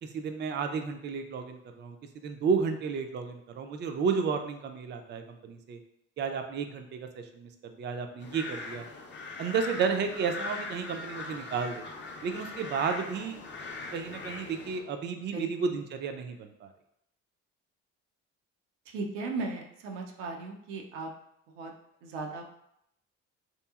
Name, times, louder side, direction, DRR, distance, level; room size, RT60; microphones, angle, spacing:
voice 1, 0.0-5.8 6.2-8.9 9.4-11.8 12.2-13.4 13.9-16.7, right 5 dB, 30° right, 6 dB, 0.4 m, -32 dB
sound 1, 8.2-14.8, left 3 dB, 30° left, 0.6 m, -41 dB
voice 2, 18.9-21.1 21.5-21.7 22.0-22.4, right 3 dB, 90° right, 2 dB, 0.5 m, -36 dB
2.9 x 2.6 x 2.3 m, 0.76 s
supercardioid pair, 65°, 36 cm